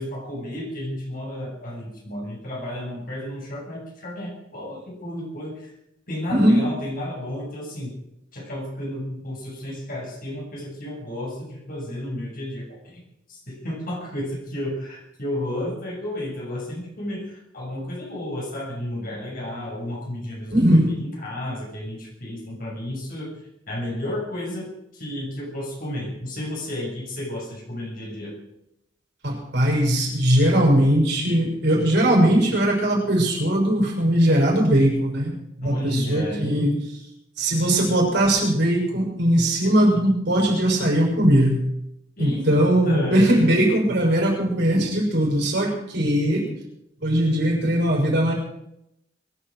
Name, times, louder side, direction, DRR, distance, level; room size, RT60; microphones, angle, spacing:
voice 1, 0.0-5.7 6.1-7.9 8.3-13.0 13.3-23.4 23.7-28.3 35.6-36.8 42.2-42.5 42.8-43.5, left 1 dB, 45° left, -1 dB, 6.5 m, -32 dB
voice 2, 6.3-6.6 20.5-20.9 29.2-36.7 37.4-41.6 42.2-46.5 47.0-48.3, right 1 dB, 60° right, -1 dB, 6.3 m, -20 dB
23.0 x 9.9 x 6.3 m, 0.80 s
head